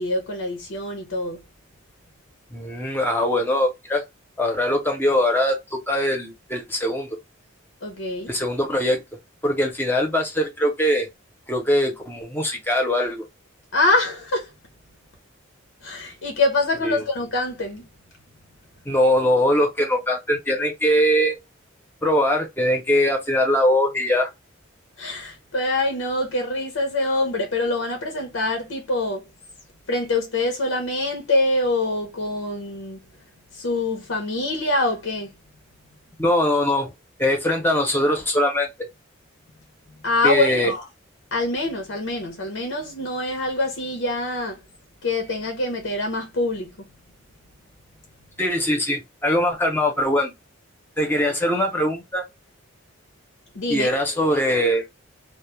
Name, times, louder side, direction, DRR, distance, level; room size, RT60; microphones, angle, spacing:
voice 1, 0.0-1.4 7.8-8.3 13.7-14.5 15.8-17.9 25.0-29.3 29.9-33.0 33.5-35.3 40.0-40.9 41.3-44.6 45.0-46.9 53.5-54.0, left 2 dB, 80° left, 0.6 m, -25 dB
voice 2, 2.5-4.0 4.4-7.1 8.3-9.0 9.4-11.1 11.5-13.2 16.8-17.0 18.9-21.4 22.0-24.3 36.2-36.9 37.2-38.7 40.2-40.7 48.4-50.3 51.0-52.2 53.7-54.8, left 1 dB, 10° left, 0.5 m, -21 dB
2.2 x 2.0 x 2.9 m
head